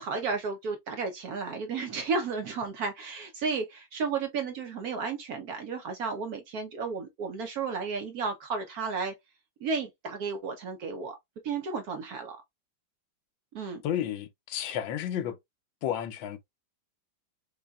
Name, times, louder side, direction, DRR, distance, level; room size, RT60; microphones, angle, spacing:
voice 1, 0.0-9.1 9.6-11.2 11.4-12.4 13.5-13.8, right 4 dB, 65° right, 1.0 m, -33 dB
voice 2, 13.8-15.4 15.8-16.4, left 10 dB, 85° left, 1.4 m, -32 dB
5.3 x 2.3 x 2.3 m
omnidirectional pair, 2.1 m